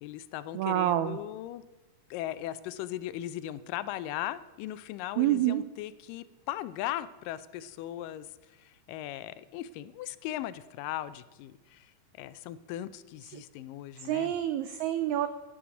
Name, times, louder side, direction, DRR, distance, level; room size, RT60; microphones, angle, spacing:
voice 1, 0.0-1.6 2.1-14.3, left 13 dB, 85° left, 15 dB, 2.2 m, -38 dB
voice 2, 0.5-1.2 5.2-5.6 13.3-13.4 14.0-15.3, right 13 dB, 85° right, 11 dB, 1.6 m, -27 dB
11.5 x 10.0 x 6.1 m, 1.1 s
omnidirectional pair, 3.8 m